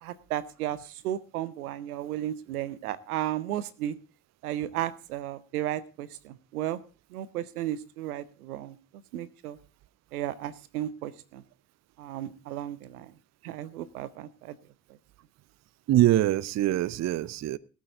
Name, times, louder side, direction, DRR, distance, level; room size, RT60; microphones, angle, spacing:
voice 1, 0.0-4.0 4.4-6.8 7.1-8.8 9.1-9.6 10.1-11.4 12.0-13.1 13.4-14.6, right 12 dB, 75° right, 0.7 m, -34 dB
voice 2, 15.9-17.6, right 14 dB, 40° right, 0.6 m, -24 dB
18.5 x 8.3 x 3.8 m
figure-of-eight pair, 40°, 45 cm